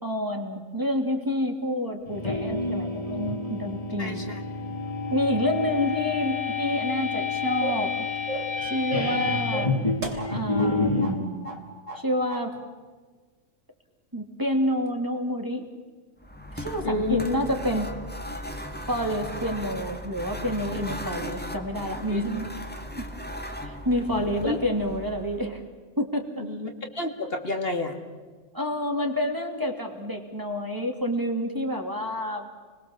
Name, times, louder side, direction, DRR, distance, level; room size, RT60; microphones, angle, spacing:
voice 1, 0.0-4.2 5.1-7.9 8.6-9.7 10.3-11.5 11.9-12.5 14.1-15.6 16.5-17.9 18.9-22.5 23.0-23.1 23.6-25.6 26.0-26.4 28.5-32.5, equal, 15° right, 2 dB, 2.8 m, -28 dB
sound 1, 2.1-11.2, left 4 dB, 25° left, 2.8 m, -29 dB
voice 2, 4.0-4.4 16.8-17.4 22.1-22.2 24.4-24.6 26.5-28.0, left 2 dB, 50° left, 3 dB, 2.4 m, -29 dB
sound 2, 7.6-7.9 8.3-8.6 8.9-9.2 9.5-10.7 11.0-11.2 11.4-12.0 12.3-12.5, right 2 dB, 85° right, 3.6 m, -34 dB
sound 3, 16.2-25.6, equal, 10° left, 1.8 m, -37 dB
29.5 x 21.5 x 7.3 m, 1.4 s
omnidirectional pair, 1.3 m